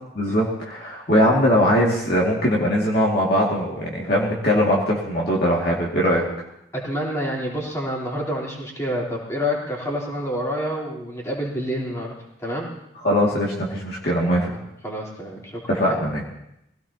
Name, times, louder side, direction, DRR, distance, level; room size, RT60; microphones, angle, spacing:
voice 1, 0.1-6.2 13.0-14.5 15.7-16.2, equal, 50° left, -3 dB, 2.3 m, -21 dB
voice 2, 6.7-12.1 12.4-12.7 14.5-15.6 15.9-16.0, equal, 15° left, -4 dB, 3.7 m, -28 dB
23.5 x 17.0 x 2.9 m, 0.81 s
head